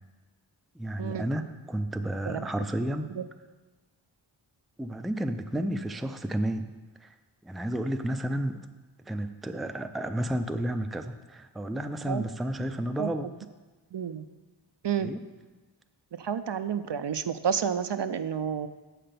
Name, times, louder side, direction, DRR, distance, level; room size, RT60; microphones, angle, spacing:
voice 1, 0.7-3.1 4.8-6.7 7.0-7.1 7.4-8.7 9.1-13.3 15.0-15.2, right 1 dB, ahead, 7 dB, 0.4 m, -31 dB
voice 2, 13.9-14.2 14.8-15.1 16.1-18.7, right 7 dB, 65° right, 11 dB, 0.5 m, -30 dB
7.6 x 5.8 x 6.7 m, 1.2 s
wide cardioid pair, 45°, 46 cm